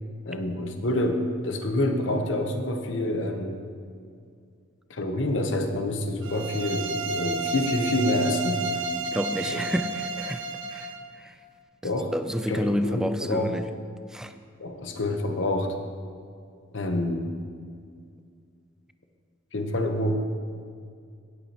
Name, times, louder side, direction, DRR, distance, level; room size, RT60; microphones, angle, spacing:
voice 1, 0.2-3.6 4.9-8.8 9.4-9.7 11.8-12.1 12.5-13.6 14.6-15.7 16.7-17.3 19.5-20.2, left 1 dB, 65° left, 5 dB, 1.0 m, -27 dB
sound 1, 6.2-11.0, right 3 dB, 70° right, 0.7 m, -31 dB
voice 2, 9.1-10.4 10.7-10.9 11.2-11.3 12.1-13.7 14.1-14.3, equal, 5° right, 9 dB, 0.4 m, -29 dB
17.5 x 8.3 x 2.9 m, 2.2 s
head